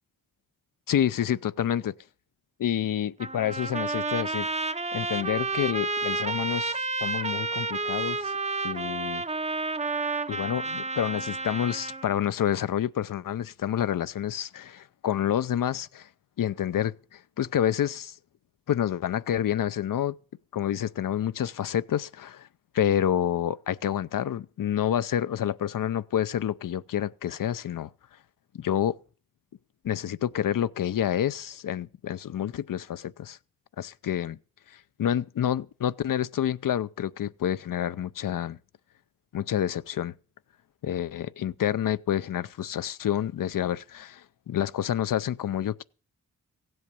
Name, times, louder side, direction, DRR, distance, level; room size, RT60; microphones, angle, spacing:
voice 1, 0.9-1.9 2.6-4.5 4.9-8.3 8.6-9.2 10.3-16.1 16.4-18.1 18.7-20.1 20.5-22.5 22.7-27.9 28.5-29.0 29.8-33.4 33.8-34.4 35.0-38.6 39.3-40.1 40.8-45.8, left 10 dB, 65° left, 0.6 m, -28 dB
Trumpet, 3.2-12.1, right 3 dB, 20° right, 0.6 m, -30 dB
16.0 x 7.8 x 6.9 m
cardioid pair, 65°, 35 cm